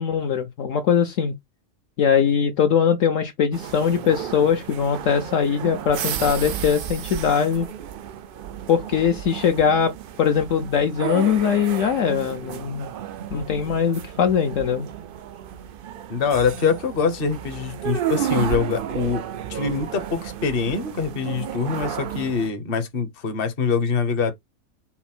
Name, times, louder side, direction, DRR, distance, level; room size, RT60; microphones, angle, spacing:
voice 1, 0.0-1.3 2.0-7.7 8.7-12.9 13.3-14.9, left 7 dB, 70° left, 1.0 m, -21 dB
sound 1, 3.5-22.5, right 10 dB, 80° right, 0.4 m, -32 dB
voice 2, 16.1-19.2 19.5-24.3, left 5 dB, 45° left, 1.0 m, -24 dB
5.7 x 2.1 x 4.3 m
omnidirectional pair, 1.5 m